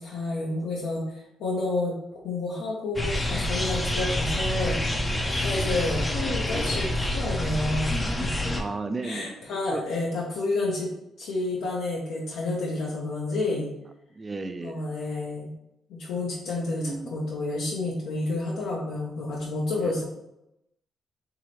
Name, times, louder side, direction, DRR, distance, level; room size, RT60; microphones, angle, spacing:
voice 1, 0.0-1.9 2.2-4.8 5.3-8.5 9.0-10.9 11.2-13.7 14.6-15.5 15.9-20.1, left 2 dB, 80° left, -4 dB, 0.9 m, -30 dB
sound 1, 3.0-8.6, left 1 dB, 15° left, 0.6 m, -27 dB
voice 2, 8.5-9.8 14.2-14.9 16.6-17.2 19.8-19.9, right 3 dB, 25° right, 9 dB, 0.4 m, -35 dB
4.7 x 2.8 x 3.1 m, 0.85 s
cardioid pair, 90°, 0 cm